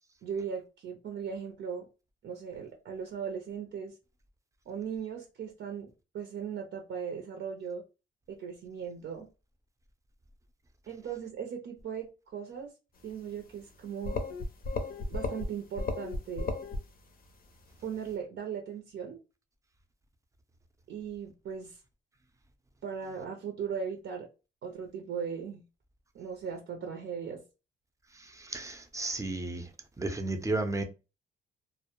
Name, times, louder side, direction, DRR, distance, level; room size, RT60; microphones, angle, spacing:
voice 1, 0.2-1.9 2.2-4.0 4.7-5.9 6.1-7.8 8.3-9.3 10.9-12.7 13.0-14.2 15.1-16.5 17.8-19.2 20.9-21.8 22.8-24.3 24.6-25.6 26.1-27.4, right 7 dB, 70° right, 0.6 m, -38 dB
sound 1, 13.7-13.8 14.0-15.5 15.8-16.8, left 3 dB, 50° left, 0.6 m, -34 dB
voice 2, 28.4-29.7 30.0-30.8, right 2 dB, 15° right, 0.5 m, -33 dB
2.1 x 2.0 x 2.9 m
cardioid pair, 90°, 20 cm